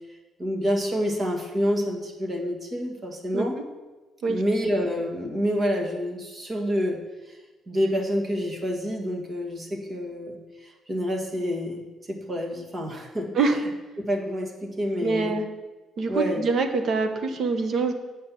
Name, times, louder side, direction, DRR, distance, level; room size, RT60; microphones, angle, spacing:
voice 1, 0.4-3.6 4.3-7.0 7.7-13.3 14.0-15.4 16.1-16.4, equal, 30° right, 1 dB, 1.8 m, -28 dB
voice 2, 15.0-15.4 16.0-17.9, right 4 dB, 55° right, 7 dB, 1.1 m, -24 dB
8.8 x 5.3 x 7.5 m, 1.2 s
cardioid pair, 120°, 0 cm